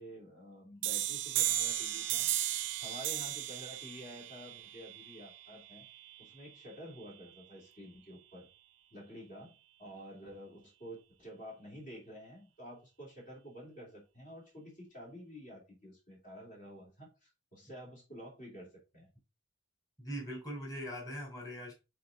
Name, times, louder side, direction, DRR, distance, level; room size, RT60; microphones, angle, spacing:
voice 1, 0.0-2.2 2.8-5.9 6.2-8.5 8.9-9.5 9.8-19.1, equal, 45° left, 2.8 m, -50 dB
sound 1, 0.8-6.2, right 12 dB, 75° right, 0.6 m, -35 dB
voice 2, 20.0-21.7, equal, 20° left, 2.8 m, -41 dB
6.5 x 4.2 x 3.9 m
head